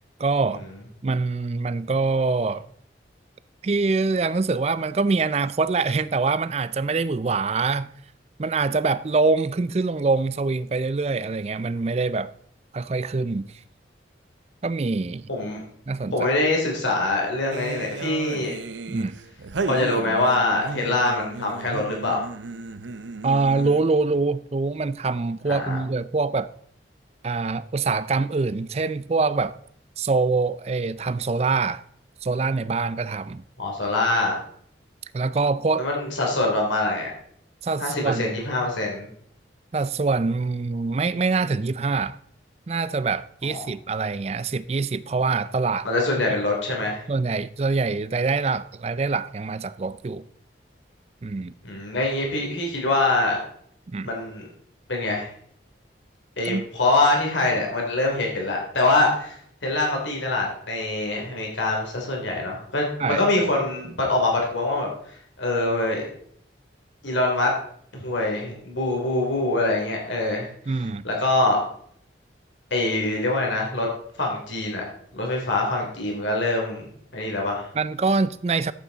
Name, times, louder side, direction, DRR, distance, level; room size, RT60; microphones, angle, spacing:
voice 1, 0.2-0.6 1.0-2.6 3.6-7.9 8.4-12.3 12.7-13.5 14.6-15.3 15.9-16.2 18.9-19.1 23.2-26.5 27.2-29.6 30.0-31.8 32.2-33.4 35.1-35.9 37.6-38.3 39.7-42.2 42.7-45.9 47.1-50.2 51.2-51.5 53.9-54.1 56.4-56.7 63.0-63.2 70.7-71.0 77.8-78.7, right 4 dB, 35° right, 0.4 m, -24 dB
voice 2, 15.3-15.6 16.1-18.5 19.6-22.2 25.5-25.8 33.6-34.4 35.8-37.1 37.8-39.1 43.4-43.6 45.8-47.0 51.6-53.4 54.0-54.5 54.9-55.3 56.4-59.3 59.6-66.1 67.0-67.5 67.9-70.5 71.0-71.6 72.7-73.9 74.2-74.8 75.1-77.7, left 2 dB, 90° left, 3.2 m, -24 dB
sound 1, 17.5-24.0, right 3 dB, 85° right, 0.6 m, -34 dB
11.5 x 8.5 x 4.0 m
head